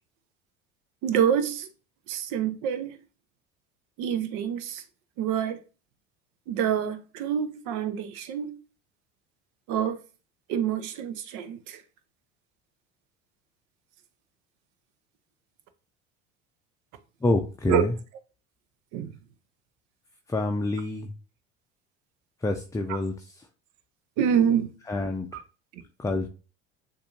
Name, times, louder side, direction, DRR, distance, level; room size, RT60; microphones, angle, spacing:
voice 1, 1.0-1.7 2.1-2.9 4.0-4.8 5.2-5.6 6.5-8.6 9.7-10.0 10.5-11.8 17.7-17.8 18.9-19.2 24.2-24.7, right 8 dB, 65° right, 0.8 m, -26 dB
voice 2, 17.2-17.9 20.3-21.1 22.4-23.5 24.9-25.3 26.0-26.3, left 2 dB, 10° left, 0.5 m, -27 dB
6.8 x 2.7 x 2.6 m
hypercardioid pair, 75°, 33 cm